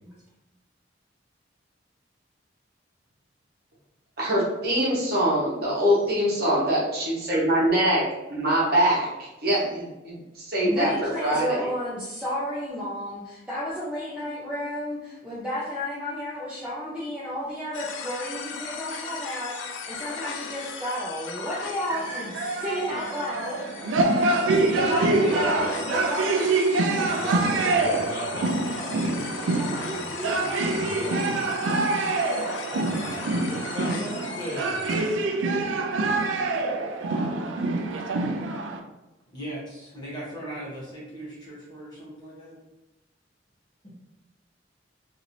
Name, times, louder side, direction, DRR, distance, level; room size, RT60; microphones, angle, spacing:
voice 1, 4.2-8.0 8.3-11.7, equal, 55° right, -6 dB, 1.0 m, -24 dB
voice 2, 10.6-23.7 24.6-27.6 29.1-31.3, equal, 5° right, -9 dB, 0.6 m, -33 dB
sound 1, 17.7-35.0, left 5 dB, 75° left, 0.4 m, -38 dB
sound 2, 21.9-38.8, right 2 dB, 80° right, 0.3 m, -26 dB
voice 3, 24.7-25.9 27.0-31.6 32.7-34.9, equal, 25° right, -8 dB, 1.4 m, -38 dB
voice 4, 39.3-42.6, right 1 dB, 25° left, -7 dB, 1.0 m, -38 dB
3.0 x 2.7 x 2.6 m, 0.98 s
head